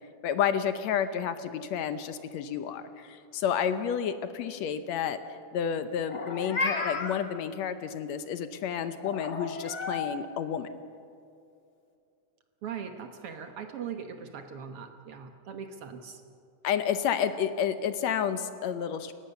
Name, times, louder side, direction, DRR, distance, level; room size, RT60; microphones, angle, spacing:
voice 1, 0.2-5.2 5.5-10.7 16.6-19.1, left 8 dB, 70° left, 10 dB, 2.0 m, -30 dB
Meow, 6.0-7.2 9.0-10.1, left 4 dB, 35° left, 1.3 m, -32 dB
voice 2, 12.6-16.2, right 7 dB, 60° right, 6 dB, 1.8 m, -40 dB
29.5 x 15.5 x 6.8 m, 2.6 s
omnidirectional pair, 3.4 m